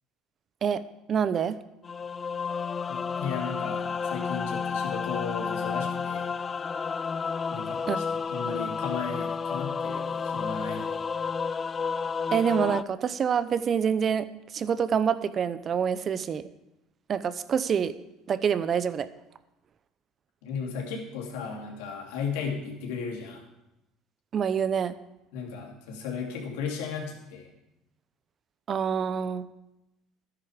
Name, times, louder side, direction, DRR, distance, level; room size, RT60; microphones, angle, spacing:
voice 1, 1.1-1.6 7.9-8.0 12.3-14.3 14.5-16.4 17.1-17.9 18.3-19.1 24.3-24.9 28.7-29.5, right 7 dB, 45° right, 14 dB, 0.8 m, -26 dB
sound 1, 1.8-12.8, left 5 dB, 30° left, 0.3 m, -31 dB
voice 2, 2.9-6.3 7.5-11.0 20.4-23.4 25.3-27.5, left 5 dB, 80° left, 0 dB, 2.7 m, -35 dB
13.0 x 9.9 x 5.1 m, 0.90 s
hypercardioid pair, 80°, 0 cm